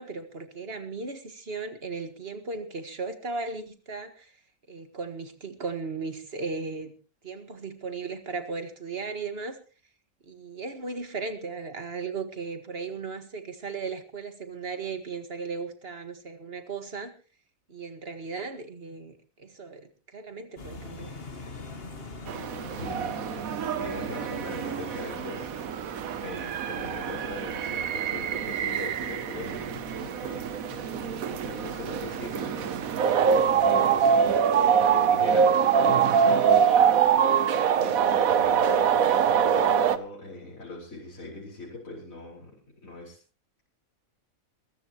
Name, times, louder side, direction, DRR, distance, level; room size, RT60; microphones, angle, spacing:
voice 1, 0.0-4.3 4.7-6.9 7.2-9.6 10.2-17.1 17.7-21.2 30.8-31.2, right 4 dB, 45° right, 8 dB, 2.0 m, -36 dB
sound 1, 20.6-34.4, left 3 dB, 45° left, 1.9 m, -44 dB
sound 2, 22.3-40.0, right 7 dB, 80° right, 1.3 m, -24 dB
voice 2, 22.8-25.5 26.2-30.5 31.2-32.9 33.2-36.8 37.0-37.5 37.8-42.6 42.8-43.2, left 2 dB, 70° left, -4 dB, 5.4 m, -40 dB
21.5 x 15.0 x 3.1 m, 0.36 s
omnidirectional pair, 1.5 m